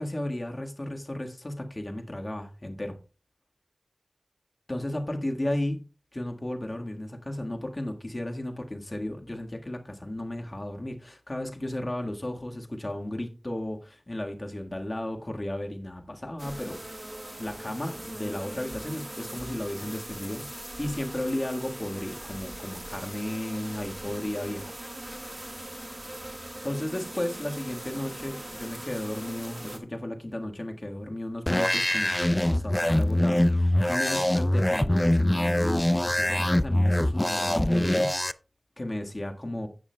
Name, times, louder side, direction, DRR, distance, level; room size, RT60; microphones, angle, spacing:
voice 1, 0.0-3.0 4.7-5.8 6.1-16.8 17.4-24.7 26.6-38.3 38.8-39.7, left 1 dB, 35° left, 1.5 m, -34 dB
sound 1, 16.4-29.8, right 1 dB, 25° right, 1.5 m, -40 dB
sound 2, 31.5-38.3, left 1 dB, 20° left, 0.4 m, -24 dB
17.0 x 6.1 x 2.2 m
wide cardioid pair, 50°, 0 cm